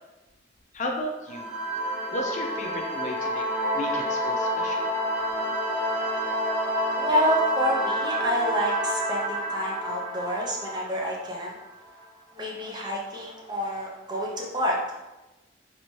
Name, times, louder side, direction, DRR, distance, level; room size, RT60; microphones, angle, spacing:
voice 1, 0.7-1.5 2.1-3.5 3.7-4.9, left 1 dB, 40° left, 2 dB, 0.4 m, -34 dB
sound 1, 1.3-11.7, equal, 5° right, 1.0 m, -28 dB
voice 2, 7.0-11.6 12.3-14.8, equal, 25° right, -2 dB, 0.5 m, -28 dB
3.3 x 2.7 x 3.1 m, 1.0 s
head